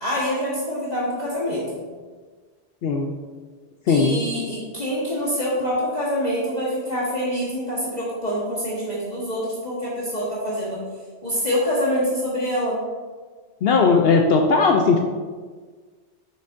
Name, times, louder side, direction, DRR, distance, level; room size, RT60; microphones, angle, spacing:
voice 1, 0.0-1.7 3.9-10.8 11.2-12.8, equal, 40° left, -8 dB, 1.4 m, -25 dB
voice 2, 2.8-3.1 3.9-4.3 13.6-15.1, left 4 dB, 65° left, 2 dB, 0.7 m, -18 dB
6.6 x 6.5 x 2.6 m, 1.4 s
omnidirectional pair, 1.2 m